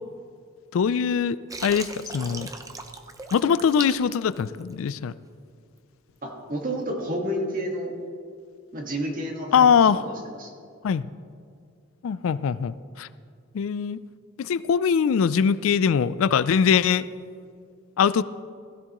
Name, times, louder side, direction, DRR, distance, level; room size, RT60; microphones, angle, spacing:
voice 1, 0.7-1.9 2.1-2.5 3.3-5.1 9.5-10.0 10.8-11.0 12.0-13.1 13.5-14.0 14.4-17.1 18.0-18.2, left 7 dB, 70° left, 16 dB, 0.3 m, -22 dB
Water, 1.5-5.0, right 3 dB, 15° right, 0.6 m, -38 dB
voice 2, 6.2-7.9 8.7-10.0 10.4-10.5, equal, 40° right, 1 dB, 1.6 m, -30 dB
16.5 x 13.5 x 3.0 m, 2.2 s
head